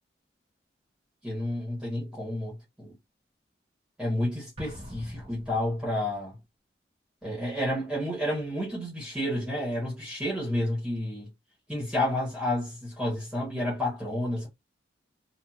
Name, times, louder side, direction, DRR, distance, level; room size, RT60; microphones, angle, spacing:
voice 1, 1.2-2.9 4.0-6.4 7.2-11.3 11.7-14.5, left 1 dB, 5° right, 1.4 m, -30 dB
Explosion, 4.6-6.2, left 1 dB, 30° right, 1.0 m, -44 dB
2.9 x 2.5 x 2.4 m
head